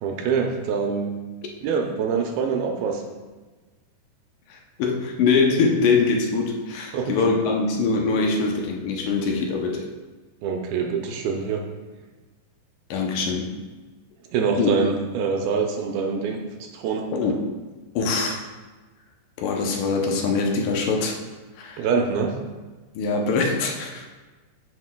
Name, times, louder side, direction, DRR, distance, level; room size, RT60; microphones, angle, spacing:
voice 1, 0.0-1.1 1.6-3.0 6.9-7.1 10.4-11.6 14.3-17.1 21.8-22.3, right 5 dB, 80° right, 2 dB, 2.4 m, -25 dB
voice 2, 4.5-9.9 12.9-13.6 14.6-14.8 17.1-17.4 18.0-18.4 19.4-21.2 21.6-21.9 23.0-24.1, left 4 dB, 80° left, 1 dB, 1.9 m, -23 dB
9.5 x 6.1 x 2.2 m, 1.3 s
omnidirectional pair, 4.4 m